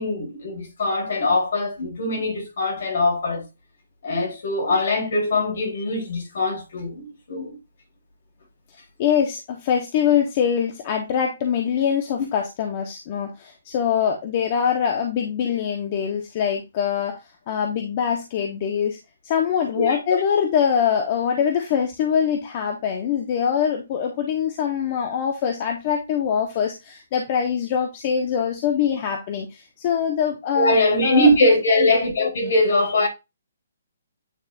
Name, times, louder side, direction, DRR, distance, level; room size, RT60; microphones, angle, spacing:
voice 1, 0.0-3.4 4.0-7.6 19.7-20.2 30.6-33.1, left 1 dB, 65° left, 3.6 m, -22 dB
voice 2, 9.0-17.2 17.5-19.0 19.2-31.3, left 8 dB, 35° left, 1.1 m, -23 dB
9.3 x 4.3 x 2.5 m
hypercardioid pair, 155°, 0 cm